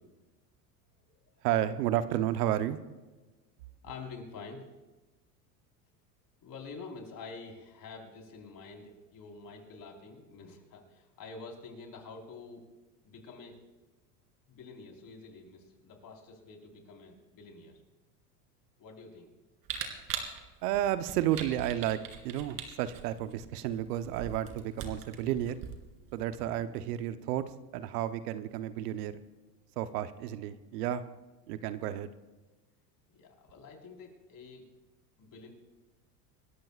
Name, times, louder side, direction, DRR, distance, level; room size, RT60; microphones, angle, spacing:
voice 1, 1.4-2.8 20.6-25.6 26.1-29.1 29.8-31.0 31.5-32.1, right 12 dB, 70° right, 12 dB, 1.0 m, -32 dB
voice 2, 3.8-4.6 6.4-12.7 13.0-13.6 14.5-17.8 18.8-19.3 33.1-34.6 35.2-35.5, left 4 dB, 45° left, 1 dB, 4.5 m, -47 dB
Camera, 19.6-26.4, right 7 dB, 45° right, 2.8 m, -42 dB
27.5 x 13.5 x 2.5 m, 1.2 s
hypercardioid pair, 95°, 48 cm